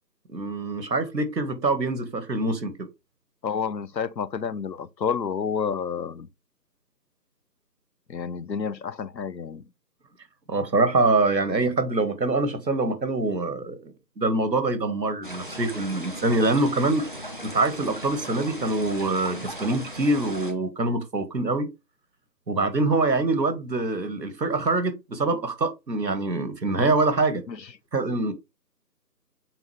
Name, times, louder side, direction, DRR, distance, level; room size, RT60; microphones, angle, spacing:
voice 1, 0.3-2.9 10.5-17.1 17.4-21.7 22.5-27.4 27.9-28.3, right 2 dB, 85° right, 1.9 m, -24 dB
voice 2, 3.4-6.3 8.1-9.6 27.5-27.7, left 6 dB, 85° left, 0.9 m, -29 dB
sound 1, 15.2-20.5, equal, 30° left, 0.9 m, -37 dB
7.8 x 4.1 x 3.4 m
figure-of-eight pair, 175°, 50 cm